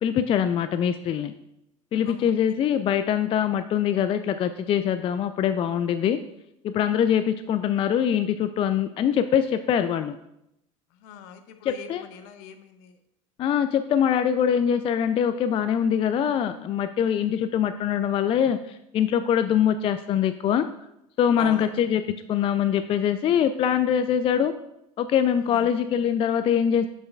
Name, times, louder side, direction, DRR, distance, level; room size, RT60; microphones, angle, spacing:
voice 1, 0.0-1.3 1.9-6.2 6.6-10.2 11.6-12.0 13.4-20.7 21.2-22.0 22.3-24.5 25.0-26.9, left 9 dB, 35° left, 10 dB, 0.3 m, -23 dB
voice 2, 10.9-13.0 21.4-21.7 25.4-25.7, left 8 dB, 60° left, 9 dB, 0.7 m, -41 dB
7.5 x 6.6 x 2.3 m, 0.81 s
hypercardioid pair, 75°, 17 cm